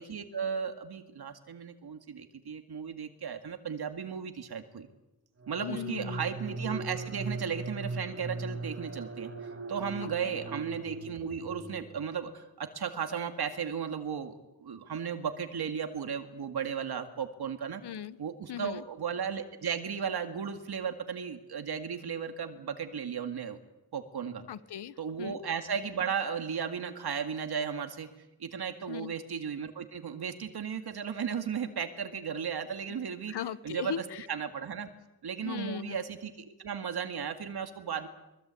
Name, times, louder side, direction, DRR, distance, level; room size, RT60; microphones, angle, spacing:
voice 1, 0.0-4.9 5.5-9.3 9.7-14.3 14.6-17.8 18.2-23.6 23.9-24.4 25.0-28.1 28.4-33.3 33.6-34.9 35.2-38.1, right 7 dB, 70° right, 7 dB, 2.1 m, -35 dB
sound 1, 5.4-12.3, right 3 dB, 30° right, 3.1 m, -39 dB
voice 2, 5.6-6.2 10.0-10.1 17.8-18.2 18.5-18.8 24.5-25.4 28.9-29.1 32.9-33.0 33.3-34.3 35.4-36.0, left 9 dB, 75° left, 16 dB, 1.0 m, -38 dB
24.0 x 22.5 x 8.4 m, 0.95 s
wide cardioid pair, 135°, 40 cm